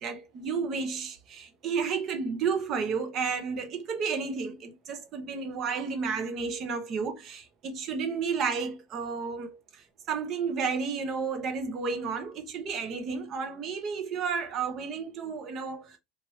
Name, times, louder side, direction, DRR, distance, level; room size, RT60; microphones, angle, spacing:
voice 1, 0.0-9.6 10.1-16.0, right 5 dB, 35° right, 0.7 m, -32 dB
3.0 x 2.5 x 3.0 m
supercardioid pair, 160°, 0 cm